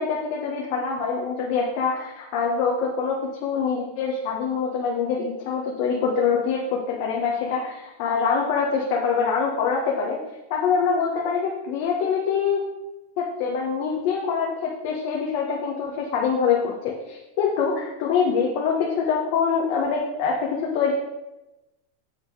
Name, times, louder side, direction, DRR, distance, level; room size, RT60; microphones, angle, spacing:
voice 1, 0.0-10.2 10.5-12.7 13.2-20.9, left 6 dB, 55° left, -2 dB, 1.2 m, -24 dB
8.4 x 4.0 x 4.9 m, 1.0 s
supercardioid pair, 140°, 0 cm